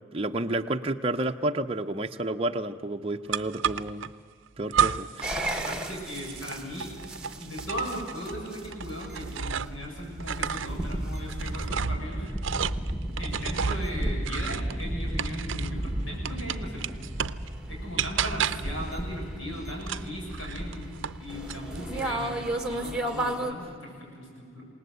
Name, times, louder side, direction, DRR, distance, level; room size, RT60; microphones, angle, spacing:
voice 1, 0.1-4.1 4.6-5.3, right 2 dB, 25° right, 4 dB, 0.6 m, -30 dB
sound 1, 3.3-4.1 4.7-5.3 5.6-9.9 10.2-15.8 16.2-17.5 18.0-18.8 19.8-21.2 21.5-22.1, right 7 dB, 65° right, 0.6 m, -32 dB
sound 2, 5.2-23.5, right 1 dB, 5° right, 1.4 m, -34 dB
voice 2, 5.5-6.9 7.3-12.3 13.2-16.9 17.7-24.6, equal, 70° left, -2 dB, 7.3 m, -38 dB
28.0 x 19.0 x 8.1 m, 2.2 s
head